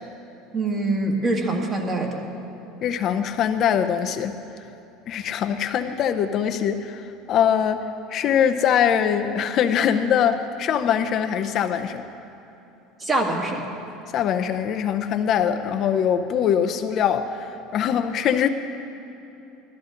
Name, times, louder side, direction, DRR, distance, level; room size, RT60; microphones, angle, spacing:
voice 1, 0.5-2.2 13.0-13.6, right 2 dB, 25° right, 0 dB, 2.0 m, -24 dB
voice 2, 2.8-4.4 5.1-12.0 14.1-18.5, left 8 dB, 50° left, 7 dB, 0.6 m, -22 dB
16.5 x 13.0 x 3.8 m, 2.9 s
supercardioid pair, 110°, 0 cm